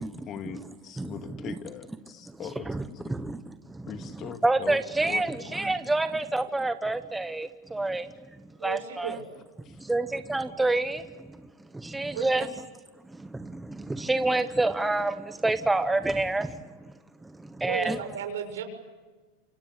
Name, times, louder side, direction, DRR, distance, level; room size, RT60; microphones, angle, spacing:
voice 1, 0.0-3.2 3.9-4.8 5.1-5.3 9.7-9.8, left 8 dB, 35° left, 2.4 m, -41 dB
voice 2, 1.0-1.5 2.3-8.1 8.6-9.2 9.8-11.4 11.7-12.5 13.1-16.9 17.2-18.0, right 2 dB, 5° right, 1.1 m, -28 dB
voice 3, 8.6-9.2 12.1-12.6 17.6-18.6, right 8 dB, 85° right, 6.8 m, -34 dB
28.0 x 25.0 x 8.4 m
supercardioid pair, 130°, 0 cm